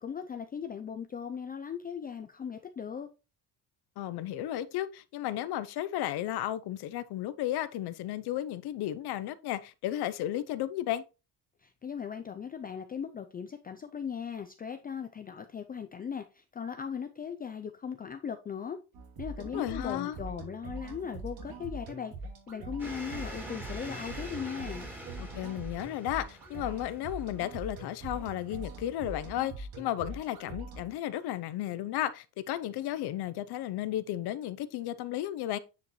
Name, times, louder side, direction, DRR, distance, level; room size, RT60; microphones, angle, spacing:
voice 1, 0.0-3.1 11.6-18.8 19.2-22.1 22.5-24.9, left 7 dB, 20° left, 0.4 m, -38 dB
voice 2, 4.0-11.0 19.5-20.2 25.2-35.6, left 13 dB, 70° left, 0.7 m, -34 dB
sound 1, 18.9-30.9, right 2 dB, 60° right, 2.7 m, -43 dB
sound 2, 22.8-29.3, equal, 5° right, 2.4 m, -46 dB
9.5 x 5.1 x 3.1 m
cardioid pair, 145°, 41 cm